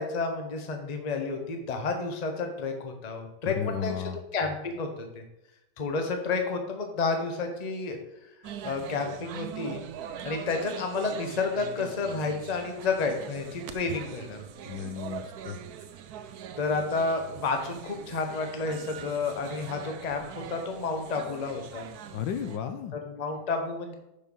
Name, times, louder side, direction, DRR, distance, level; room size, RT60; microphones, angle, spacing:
voice 1, 0.0-3.9 4.3-5.2 5.8-8.0 8.6-9.8 10.2-14.5 16.6-21.9 22.9-23.9, left 4 dB, 30° left, 4 dB, 0.8 m, -30 dB
voice 2, 3.4-4.2 14.7-15.6 22.1-22.9, left 8 dB, 75° left, 9 dB, 1.3 m, -34 dB
sound 1, 8.4-22.6, right 8 dB, 70° right, 0.9 m, -42 dB
6.7 x 5.3 x 5.4 m, 0.89 s
omnidirectional pair, 2.2 m